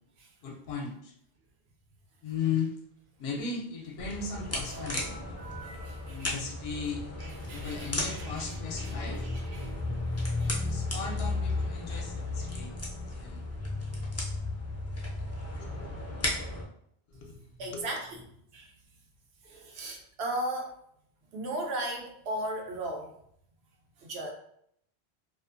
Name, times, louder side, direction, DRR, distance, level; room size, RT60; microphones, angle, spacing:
voice 1, 0.4-1.1 2.2-2.8 3.2-5.2 6.1-7.0 7.5-9.3 10.4-12.7 13.0-13.4 15.6-15.9 17.1-17.4 17.7-17.9, left 5 dB, 75° left, 1 dB, 0.8 m, -36 dB
sound 1, 4.0-16.6, left 2 dB, 25° left, 0.3 m, -34 dB
sound 2, 4.7-8.3, right 4 dB, 50° right, 0.5 m, -51 dB
voice 2, 5.8-6.3 7.2-8.5 8.8-9.7 10.2-10.5 17.6-18.2 18.5-18.7 19.4-20.8 21.3-23.1 24.0-24.3, right 1 dB, 75° right, 1 dB, 0.9 m, -37 dB
2.5 x 2.4 x 2.4 m, 0.69 s
omnidirectional pair, 1.1 m